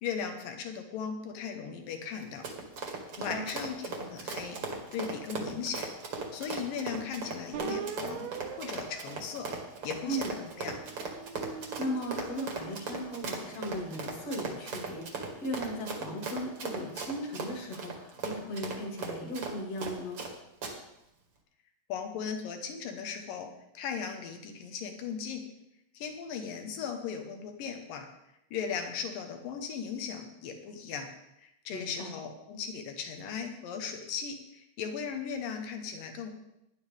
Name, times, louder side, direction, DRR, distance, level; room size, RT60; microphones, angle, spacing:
voice 1, 0.0-2.4 3.2-4.6 4.9-5.9 6.3-8.3 8.6-9.5 9.8-10.8 21.9-23.5 23.7-25.4 25.9-28.1 28.5-31.1 31.4-36.4, left 6 dB, 75° left, 5 dB, 2.1 m, -37 dB
Run, 2.2-20.3 20.6-20.7, right 4 dB, 50° right, 1.7 m, -37 dB
sound 1, 7.5-10.2 10.8-13.3, right 7 dB, 85° right, 3.8 m, -43 dB
voice 2, 10.1-10.4 11.4-20.2 31.7-32.1, equal, 40° left, 1 dB, 2.5 m, -37 dB
17.5 x 11.0 x 3.6 m, 0.83 s
omnidirectional pair, 5.8 m